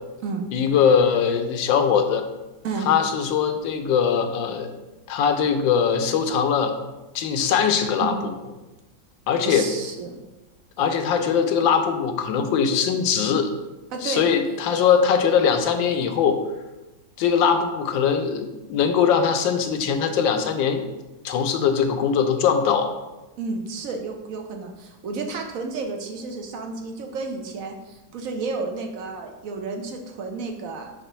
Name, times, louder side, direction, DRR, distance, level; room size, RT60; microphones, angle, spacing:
voice 1, 0.5-2.3 2.9-4.7 5.1-6.7 7.1-8.3 9.3-9.7 10.8-13.5 14.0-16.4 17.2-20.8 21.2-22.9, left 7 dB, 80° left, 7 dB, 1.4 m, -21 dB
voice 2, 9.4-10.2 13.9-14.3 23.4-30.9, right 4 dB, 60° right, 3 dB, 0.9 m, -31 dB
5.0 x 3.7 x 5.5 m, 1.1 s
omnidirectional pair, 2.0 m